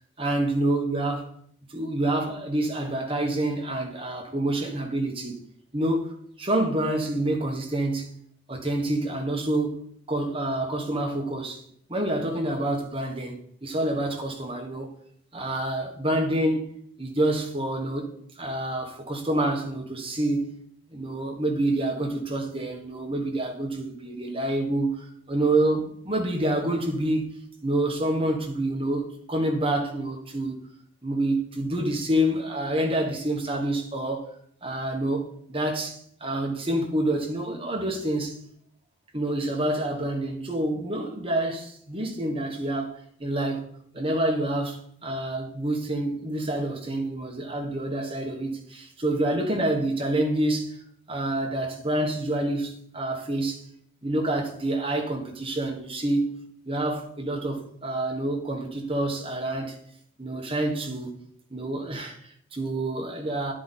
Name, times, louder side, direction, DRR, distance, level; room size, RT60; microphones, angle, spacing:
voice 1, 0.2-1.3 1.7-5.4 5.7-8.1 8.5-9.8 10.1-11.6 11.9-14.9 15.3-16.7 17.0-18.1 18.4-20.5 20.9-27.3 27.6-30.6 31.0-34.3 34.6-38.4 39.1-43.7 43.9-50.8 51.1-53.6 54.0-56.4 56.6-59.8 60.2-61.2 61.5-63.5, right 1 dB, 25° right, 1.4 m, -27 dB
11.0 x 5.0 x 4.2 m
head